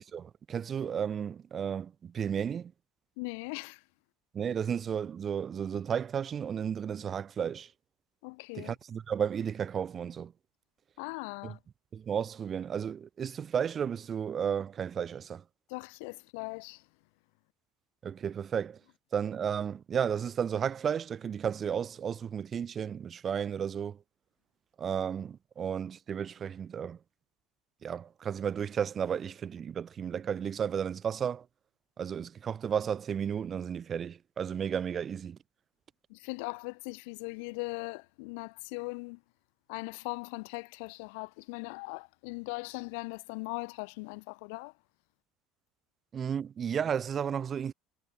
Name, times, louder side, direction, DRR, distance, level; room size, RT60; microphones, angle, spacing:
voice 1, 0.0-2.7 4.3-7.7 8.5-10.3 11.4-11.5 11.9-15.4 18.0-18.8 19.1-24.0 24.8-27.0 27.8-31.5 32.0-35.4 46.1-47.7, right 8 dB, 25° right, 2.5 m, -33 dB
voice 2, 3.2-3.8 8.2-8.7 11.0-11.6 15.7-16.8 36.1-39.2 39.7-44.7, left 32 dB, 75° left, 6.4 m, -39 dB
cardioid pair, 160°, 0 cm